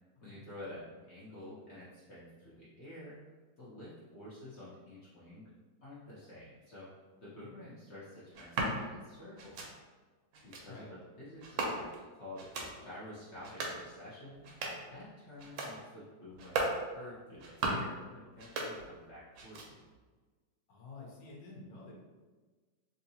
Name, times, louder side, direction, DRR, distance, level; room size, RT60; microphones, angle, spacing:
voice 1, 0.2-3.2 3.6-5.5 5.8-9.7 10.4-12.5 12.8-14.4 14.9-19.8, left 1 dB, 50° left, -9 dB, 0.8 m, -50 dB
sound 1, 8.3-8.8 9.4-9.7 10.3-10.6 11.4-12.0 12.4-12.7 13.3-13.8 14.3-14.9 15.4-15.7 16.3-16.8 17.3-17.9 18.3-19.1 19.3-19.9, right 2 dB, 85° right, 1.4 m, -37 dB
voice 2, 20.7-21.9, left 3 dB, 75° left, -3 dB, 1.5 m, -49 dB
3.6 x 2.8 x 2.7 m, 1.3 s
omnidirectional pair, 2.1 m